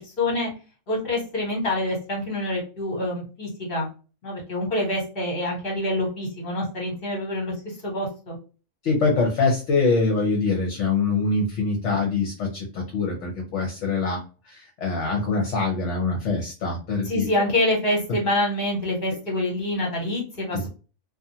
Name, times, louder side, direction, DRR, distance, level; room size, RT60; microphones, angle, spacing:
voice 1, 0.2-0.5 0.9-3.9 4.2-7.5 7.8-8.4 17.0-20.7, left 1 dB, 45° left, -2 dB, 1.4 m, -26 dB
voice 2, 8.8-17.2 20.5-20.7, left 3 dB, 65° left, 0 dB, 1.0 m, -24 dB
2.5 x 2.3 x 2.7 m, 0.35 s
omnidirectional pair, 1.3 m